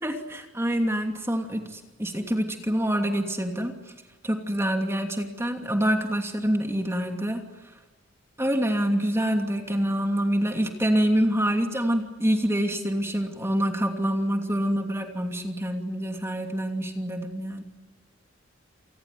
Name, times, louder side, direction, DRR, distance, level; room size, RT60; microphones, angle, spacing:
voice 1, 0.0-3.7 4.2-7.4 8.4-17.6, equal, 15° right, 4 dB, 2.8 m, -26 dB
29.0 x 19.0 x 9.5 m, 1.2 s
head